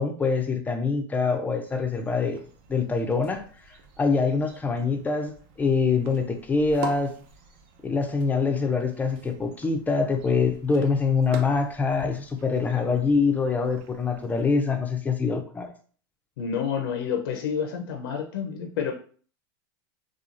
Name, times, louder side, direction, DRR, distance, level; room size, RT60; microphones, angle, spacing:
voice 1, 0.0-2.4 2.7-3.4 4.0-7.1 7.8-15.7, left 4 dB, 15° left, 0.4 m, -24 dB
sound 1, 1.6-14.5, right 4 dB, 55° right, 0.6 m, -46 dB
voice 2, 16.4-18.9, left 7 dB, 75° left, 0.5 m, -29 dB
2.8 x 2.3 x 2.4 m
hypercardioid pair, 110°, 12 cm